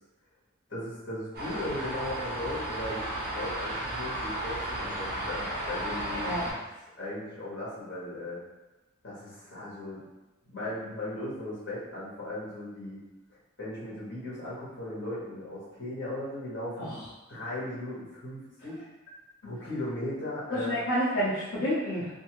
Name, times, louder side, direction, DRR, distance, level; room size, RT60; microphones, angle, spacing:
voice 1, 0.7-6.7 7.0-8.4 9.0-10.0 10.5-13.0 13.6-17.0 17.3-18.8 19.4-20.7, left 1 dB, 60° left, -8 dB, 1.3 m, -37 dB
sound 1, 1.3-6.5, right 1 dB, 50° right, 0.8 m, -34 dB
voice 2, 20.5-22.1, equal, 85° left, -8 dB, 0.6 m, -29 dB
2.6 x 2.6 x 2.9 m, 1.1 s
head